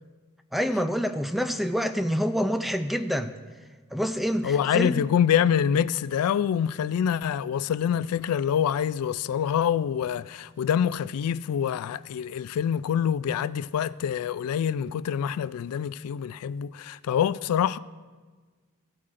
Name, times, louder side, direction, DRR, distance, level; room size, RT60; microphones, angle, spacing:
voice 1, 0.5-3.4 3.9-5.0, equal, ahead, 0.3 m, -27 dB
voice 2, 4.4-17.8, left 8 dB, 85° left, 0.3 m, -26 dB
16.5 x 8.5 x 2.5 m
head